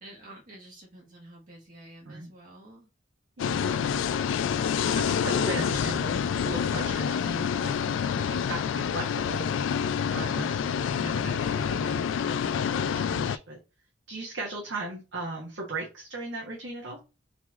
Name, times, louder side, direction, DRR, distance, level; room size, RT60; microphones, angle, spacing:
voice 1, 0.0-2.9, right 1 dB, 45° right, -3 dB, 1.2 m, -50 dB
sound 1, 3.4-13.4, left 7 dB, 85° left, 0.3 m, -27 dB
voice 2, 4.8-7.7 8.1-9.5 10.0-13.6 14.1-17.0, right 2 dB, 70° right, -3 dB, 1.3 m, -38 dB
3.9 x 3.1 x 3.6 m, 0.30 s
head